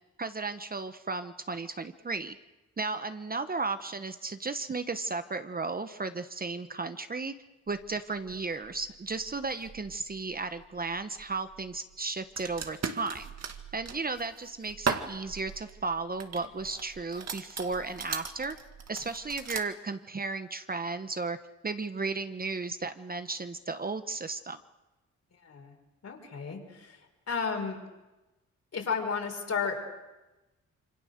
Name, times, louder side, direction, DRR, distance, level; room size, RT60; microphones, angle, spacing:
voice 1, 0.2-2.4 2.8-7.3 7.7-13.3 13.7-18.6 18.9-21.4 21.6-24.6, right 3 dB, 30° right, 10 dB, 1.0 m, -34 dB
sound 1, 7.7-19.6, right 6 dB, 60° right, 2.0 m, -40 dB
voice 2, 25.3-25.8 26.0-27.0 27.3-27.8 28.7-29.8, left 5 dB, 55° left, 2 dB, 5.4 m, -33 dB
27.5 x 25.0 x 6.6 m, 1.1 s
cardioid pair, 90°, 30 cm